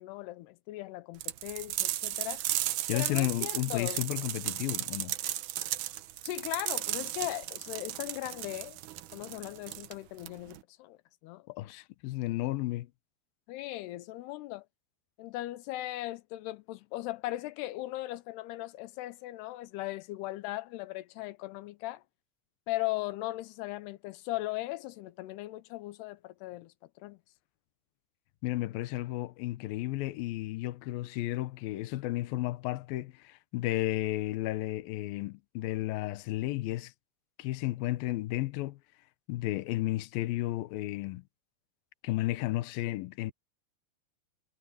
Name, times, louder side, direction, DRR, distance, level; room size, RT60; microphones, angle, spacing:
voice 1, 0.0-2.4 2.9-4.0 6.2-8.8 9.1-11.5 13.5-14.6 15.2-22.0 22.7-26.7 27.0-27.2, left 17 dB, 90° left, 2.8 m, -38 dB
sound 1, 1.2-10.6, right 14 dB, 80° right, 1.8 m, -35 dB
voice 2, 2.9-5.1 11.5-12.9 28.4-36.9 37.4-38.8 39.3-41.2 42.0-43.3, left 17 dB, 75° left, 2.5 m, -33 dB
omnidirectional pair, 4.7 m